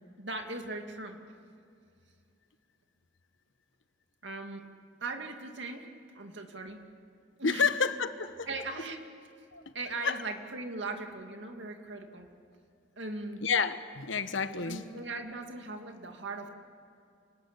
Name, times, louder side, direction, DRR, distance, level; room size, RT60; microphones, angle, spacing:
voice 1, 0.2-1.2 4.2-4.7 5.0-5.9 6.1-6.8 7.4-7.7 8.5-9.0 9.7-12.3 13.0-13.4 14.6-16.5, right 3 dB, 70° right, 4 dB, 2.4 m, -39 dB
voice 2, 7.4-8.5 9.5-9.6 10.0-10.2 13.4-14.8, left 5 dB, 80° left, 11 dB, 1.2 m, -29 dB
28.5 x 20.0 x 8.3 m, 2.4 s
head